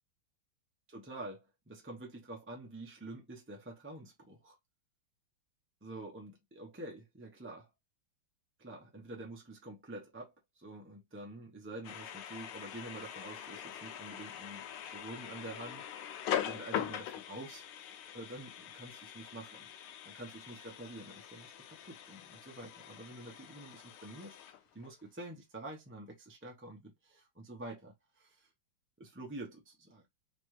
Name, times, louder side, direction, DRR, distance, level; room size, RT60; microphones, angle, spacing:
voice 1, 0.9-4.6 5.8-7.7 8.6-15.8 16.4-19.7 20.0-28.5 29.0-30.0, right 2 dB, 15° right, 0.4 m, -48 dB
sound 1, 11.8-25.0, left 10 dB, 85° left, 1.4 m, -43 dB
3.4 x 3.2 x 3.1 m
omnidirectional pair, 2.2 m